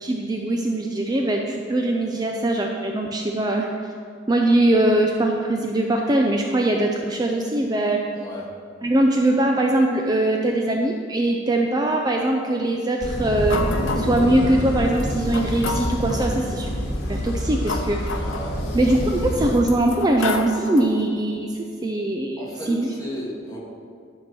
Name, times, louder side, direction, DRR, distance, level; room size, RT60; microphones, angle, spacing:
voice 1, 0.0-3.7 4.3-8.0 8.8-13.6 14.0-16.7 17.1-18.2 18.7-22.9, right 1 dB, 20° right, 1 dB, 0.4 m, -21 dB
voice 2, 8.1-8.4 18.2-18.9 22.4-23.6, equal, 20° left, -4 dB, 1.5 m, -35 dB
sound 1, 13.0-19.6, equal, 55° left, 1.5 m, -27 dB
sound 2, 13.5-14.3 15.0-15.1 15.3-16.3 17.1-19.0 19.6-21.0, left 3 dB, 80° left, 0.7 m, -30 dB
11.0 x 4.6 x 6.0 m, 2.2 s
head